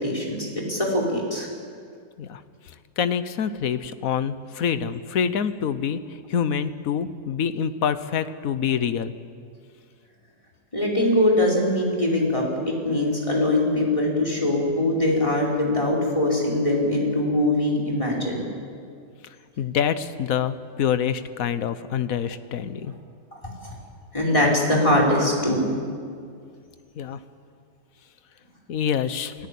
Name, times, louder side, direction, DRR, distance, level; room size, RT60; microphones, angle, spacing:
voice 1, 0.0-1.5 10.7-18.5 23.6-23.7 24.1-25.6, left 1 dB, 20° left, -2 dB, 5.0 m, -22 dB
voice 2, 3.0-9.1 19.6-22.9 27.0-27.2 28.7-29.3, left 8 dB, 60° left, 12 dB, 1.3 m, -26 dB
29.0 x 18.0 x 8.5 m, 2.3 s
omnidirectional pair, 1.8 m